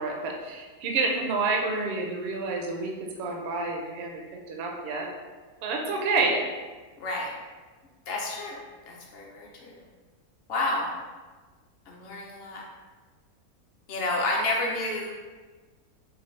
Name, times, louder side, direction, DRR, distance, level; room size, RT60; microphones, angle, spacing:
voice 1, 0.0-5.1 5.6-6.4, right 3 dB, 65° right, 1 dB, 0.6 m, -29 dB
voice 2, 7.0-7.3 8.1-8.6 8.9-9.8 10.5-10.9 11.9-12.6 13.9-15.1, left 2 dB, 55° left, -2 dB, 0.7 m, -30 dB
4.0 x 2.2 x 3.1 m, 1.3 s
omnidirectional pair, 1.6 m